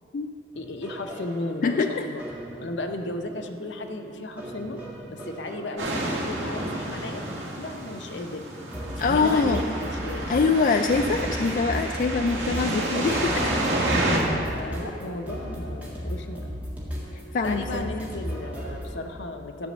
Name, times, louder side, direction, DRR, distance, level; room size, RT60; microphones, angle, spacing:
voice 1, 0.5-2.2 2.6-4.8 5.1-7.2 7.6-8.4 9.0-9.8 10.0-10.6 14.4-16.6 17.4-19.7, left 2 dB, 75° left, 5 dB, 0.7 m, -35 dB
sound 1, 0.5-18.9, equal, 10° right, 1.8 m, -36 dB
voice 2, 1.6-2.1 9.0-9.6 10.3-13.6 17.1-17.9, left 4 dB, 45° left, 6 dB, 0.3 m, -24 dB
sound 2, 5.8-14.2, right 1 dB, 75° right, 1.9 m, -29 dB
10.5 x 5.0 x 7.4 m, 2.6 s
head